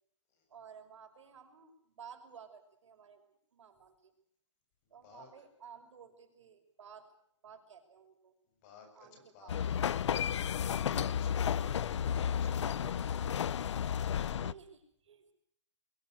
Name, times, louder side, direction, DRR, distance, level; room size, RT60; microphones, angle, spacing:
voice 1, 0.5-4.1 4.9-7.1 7.4-8.3 9.0-9.6 12.6-13.3 14.3-15.3, right 7 dB, 80° right, 6 dB, 5.8 m, -54 dB
voice 2, 4.8-5.3 8.4-13.3, left 5 dB, 35° left, 5 dB, 7.6 m, -58 dB
sound 1, 9.5-14.5, left 8 dB, 75° left, 1.0 m, -32 dB
22.5 x 20.0 x 8.1 m, 0.70 s
hypercardioid pair, 160°, 15 cm